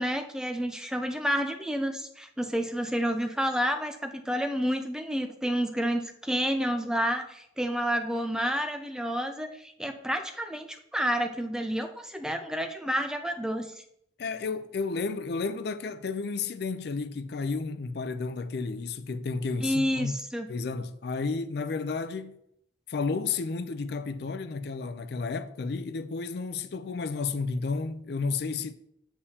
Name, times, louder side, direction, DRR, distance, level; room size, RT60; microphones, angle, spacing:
voice 1, 0.0-13.8 19.6-20.5, equal, 5° right, 0.4 m, -30 dB
voice 2, 14.2-20.1 20.5-22.4 22.9-28.7, left 4 dB, 60° left, 0.4 m, -32 dB
6.9 x 6.8 x 2.8 m
head